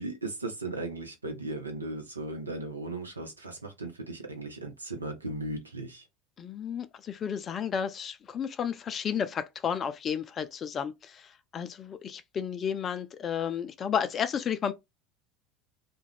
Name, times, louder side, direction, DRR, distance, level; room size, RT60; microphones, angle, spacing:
voice 1, 0.0-6.0, right 2 dB, 90° right, 0.5 m, -37 dB
voice 2, 6.4-14.7, left 7 dB, 35° left, 0.3 m, -32 dB
2.3 x 2.1 x 3.2 m
figure-of-eight pair, 70°, 0 cm